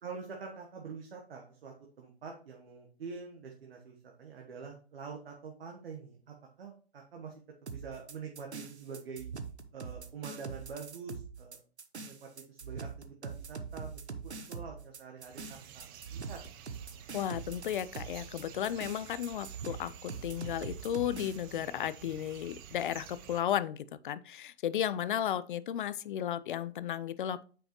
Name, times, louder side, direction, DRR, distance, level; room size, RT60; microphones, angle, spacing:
voice 1, 0.0-9.3 9.7-11.6 12.0-16.4, right 5 dB, 60° right, 1.3 m, -46 dB
sound 1, 7.7-21.4, right 5 dB, 85° right, 0.9 m, -43 dB
sound 2, 15.2-23.4, right 9 dB, 20° right, 0.5 m, -50 dB
voice 2, 17.1-27.4, left 10 dB, 50° left, 0.5 m, -34 dB
8.9 x 4.9 x 3.0 m
figure-of-eight pair, 125°, 33 cm